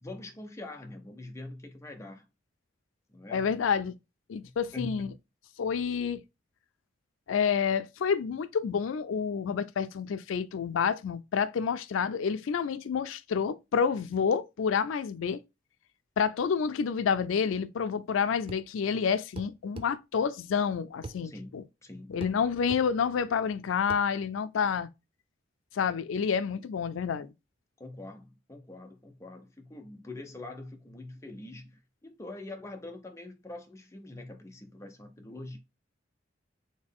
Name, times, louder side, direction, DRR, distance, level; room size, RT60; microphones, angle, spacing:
voice 1, 0.0-2.3 3.1-3.5 4.4-5.1 21.2-22.1 24.6-24.7 27.8-35.6, left 2 dB, 15° left, 0.7 m, -44 dB
voice 2, 3.3-3.9 4.3-5.1 5.6-6.2 7.3-15.4 16.2-21.6 22.1-24.9 25.7-27.3, left 6 dB, 90° left, 0.4 m, -29 dB
sound 1, 18.5-18.7 19.4-19.9 21.0-21.2 22.2-22.4 22.7-22.9 23.9-24.1, right 2 dB, 30° right, 0.4 m, -41 dB
4.3 x 3.1 x 3.5 m
head